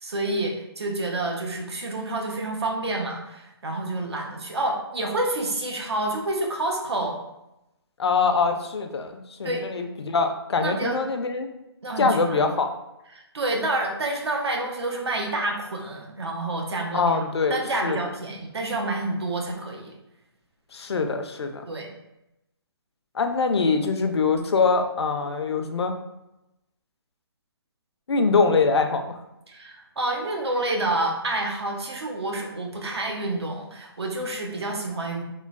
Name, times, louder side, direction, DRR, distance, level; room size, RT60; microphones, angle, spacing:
voice 1, 0.0-7.2 9.4-9.6 10.6-11.0 11.8-12.4 13.1-17.2 17.5-19.9 21.7-21.9 29.5-35.2, right 2 dB, 80° right, 1 dB, 0.7 m, -28 dB
voice 2, 8.0-11.5 12.0-12.7 16.9-18.0 20.7-21.7 23.1-26.0 28.1-29.2, left 4 dB, 80° left, 6 dB, 0.4 m, -23 dB
3.0 x 2.1 x 2.4 m, 0.90 s
hypercardioid pair, 150°, 14 cm